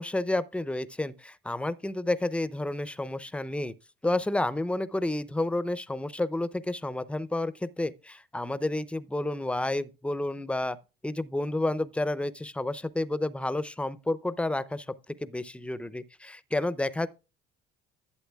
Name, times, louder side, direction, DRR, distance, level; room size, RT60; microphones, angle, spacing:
voice 1, 0.0-3.7 4.0-10.8 11.0-17.1, left 2 dB, 5° left, 0.6 m, -30 dB
11.5 x 8.0 x 2.3 m
supercardioid pair, 80°, 20 cm